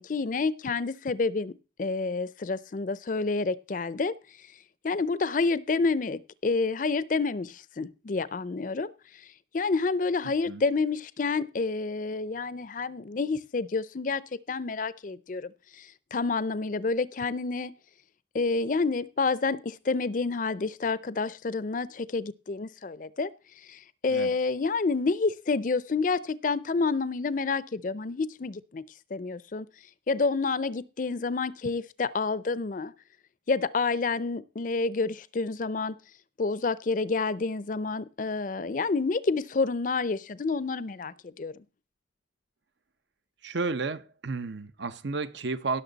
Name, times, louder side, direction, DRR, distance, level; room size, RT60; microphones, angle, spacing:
voice 1, 0.0-1.5 1.8-4.1 4.8-8.9 9.5-14.2 14.5-17.7 18.3-23.3 23.7-28.8 29.1-29.7 30.1-32.9 33.5-36.0 36.4-41.6, left 4 dB, 45° left, 0.5 m, -29 dB
voice 2, 43.4-45.8, right 3 dB, 70° right, 0.8 m, -32 dB
17.0 x 6.5 x 4.0 m
head